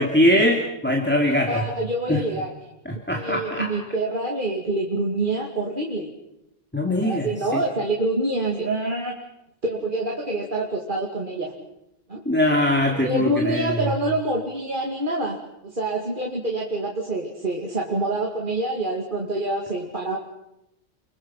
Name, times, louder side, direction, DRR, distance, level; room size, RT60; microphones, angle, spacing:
voice 1, 0.0-1.7 2.1-2.2 2.9-3.7 6.7-7.6 12.3-13.9, left 1 dB, 10° left, 1 dB, 2.4 m, -22 dB
voice 2, 1.5-2.5 3.2-6.1 6.9-9.2 9.6-11.5 12.1-12.2 13.0-15.4 15.6-20.2, right 2 dB, 40° right, 0 dB, 2.6 m, -26 dB
29.5 x 23.0 x 5.8 m, 0.85 s
omnidirectional pair, 1.3 m